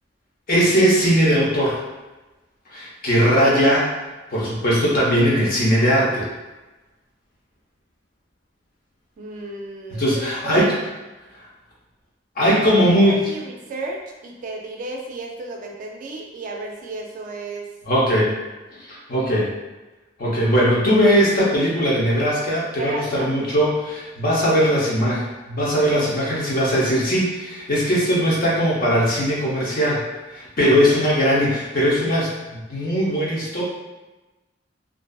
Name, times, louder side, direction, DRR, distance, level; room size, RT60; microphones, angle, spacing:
voice 1, 0.5-1.8 2.7-3.9 4.3-6.3 9.9-10.7 12.4-13.2 17.9-18.3 18.9-19.5 20.2-30.0 30.3-33.6, equal, 50° left, -5 dB, 0.7 m, -19 dB
voice 2, 9.2-10.7 12.5-12.6 13.1-17.7 22.8-23.3 30.8-31.0, right 2 dB, 45° right, 1 dB, 0.3 m, -33 dB
2.5 x 2.3 x 2.3 m, 1.1 s
head